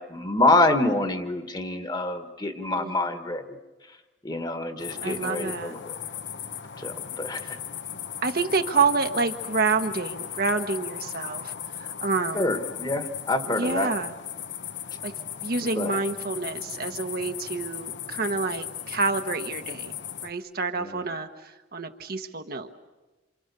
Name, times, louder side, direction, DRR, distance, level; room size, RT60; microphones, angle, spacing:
voice 1, 0.0-3.4 4.2-5.9 6.8-7.4 12.3-13.9 15.7-16.0 20.8-21.0, left 2 dB, 25° left, 8 dB, 1.5 m, -26 dB
voice 2, 2.8-3.2 5.0-5.7 8.2-12.5 13.4-14.1 15.0-15.1 15.4-19.9 20.2-22.7, right 4 dB, 55° right, 6 dB, 1.3 m, -28 dB
sound 1, 4.8-20.3, left 9 dB, 80° left, 1.1 m, -37 dB
27.5 x 27.0 x 6.9 m, 1.2 s
head